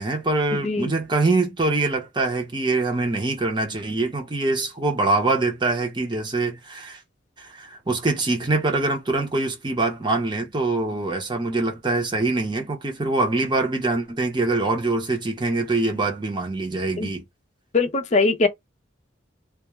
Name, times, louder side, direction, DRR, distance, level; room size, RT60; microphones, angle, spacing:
voice 1, 0.0-7.0 7.4-17.2, right 2 dB, 25° right, 0.7 m, -24 dB
voice 2, 17.7-18.5, left 3 dB, 35° left, 0.5 m, -21 dB
2.3 x 2.1 x 2.9 m
head